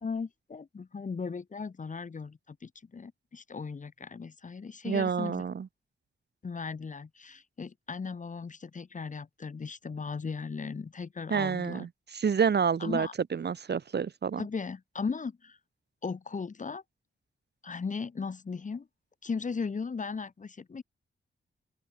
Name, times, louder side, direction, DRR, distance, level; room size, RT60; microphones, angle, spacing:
voice 1, 0.0-5.4 6.4-11.9 12.8-13.1 14.4-15.6 16.0-16.8 17.6-18.9 19.2-20.8, left 5 dB, 35° left, 1.0 m, -37 dB
voice 2, 4.8-5.7 11.3-14.4, right 6 dB, 55° right, 1.1 m, -29 dB
wide cardioid pair, 100°, 21 cm